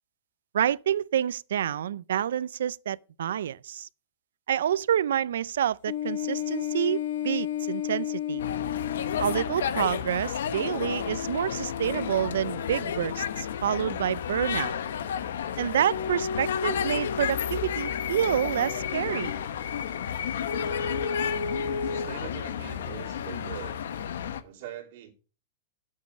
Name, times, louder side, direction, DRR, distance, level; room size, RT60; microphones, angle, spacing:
voice 1, 0.5-3.9 4.5-8.4 9.2-14.8 15.6-19.3, right 10 dB, 85° right, 0.4 m, -28 dB
sound 1, 5.9-9.6 10.8-13.9 15.9-19.4 20.4-22.1, left 7 dB, 60° left, 1.6 m, -34 dB
sound 2, 8.4-24.4, left 8 dB, 85° left, 1.1 m, -32 dB
voice 2, 21.8-23.8 24.4-25.1, right 11 dB, 50° right, 2.9 m, -42 dB
9.4 x 7.4 x 6.4 m
supercardioid pair, 170°, 0 cm